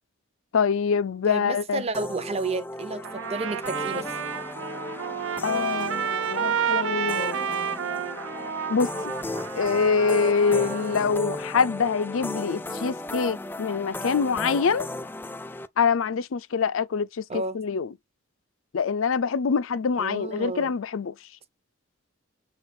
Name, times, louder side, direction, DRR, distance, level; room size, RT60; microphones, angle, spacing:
voice 1, 0.5-1.9 5.4-7.4 8.7-8.9 9.5-14.9 15.8-17.9 18.7-21.1, left 5 dB, 75° left, 0.5 m, -25 dB
voice 2, 1.3-4.1 17.3-17.6 20.0-20.7, right 3 dB, 30° right, 0.7 m, -31 dB
sound 1, 1.9-15.7, left 2 dB, 10° left, 0.3 m, -35 dB
Trumpet, 3.0-11.1, right 8 dB, 70° right, 0.5 m, -30 dB
7.1 x 3.3 x 4.4 m
head